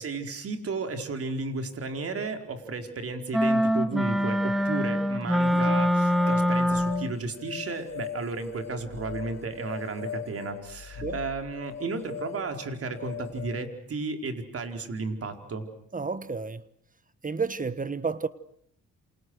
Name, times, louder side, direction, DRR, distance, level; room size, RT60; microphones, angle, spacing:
voice 1, 0.0-15.7, right 3 dB, 50° right, 4.7 m, -33 dB
sound 1, 3.3-7.2, equal, ahead, 2.0 m, -24 dB
sound 2, 5.4-13.7, left 9 dB, 55° left, 2.1 m, -40 dB
voice 2, 15.9-16.6 17.2-18.3, right 4 dB, 25° right, 1.3 m, -31 dB
28.5 x 28.0 x 6.4 m
cardioid pair, 90°, 30 cm